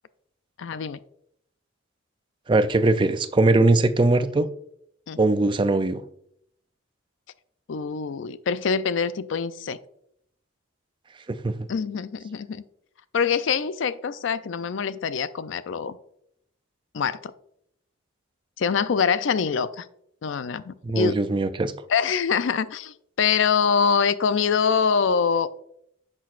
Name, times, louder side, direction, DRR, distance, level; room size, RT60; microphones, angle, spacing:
voice 1, 0.6-1.0 5.1-5.2 7.7-9.8 11.7-12.6 13.1-16.0 16.9-17.3 18.6-19.9 20.2-21.2 21.9-25.5, left 6 dB, 70° left, 15 dB, 0.4 m, -24 dB
voice 2, 2.5-4.5 5.2-6.0 11.3-11.6 20.8-21.7, right 2 dB, 25° right, 11 dB, 0.4 m, -21 dB
10.0 x 6.1 x 2.5 m, 0.73 s
head